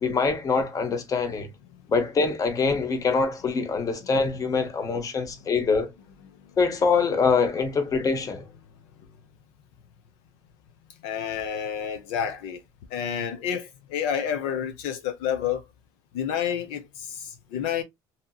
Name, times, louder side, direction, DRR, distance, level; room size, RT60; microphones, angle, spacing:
voice 1, 0.0-1.5 1.9-5.9 6.6-8.5, left 4 dB, 35° left, 0.8 m, -24 dB
voice 2, 11.0-12.6 12.9-15.6 16.1-17.8, left 8 dB, 85° left, 0.5 m, -29 dB
2.7 x 2.7 x 2.3 m
supercardioid pair, 100°, 10 cm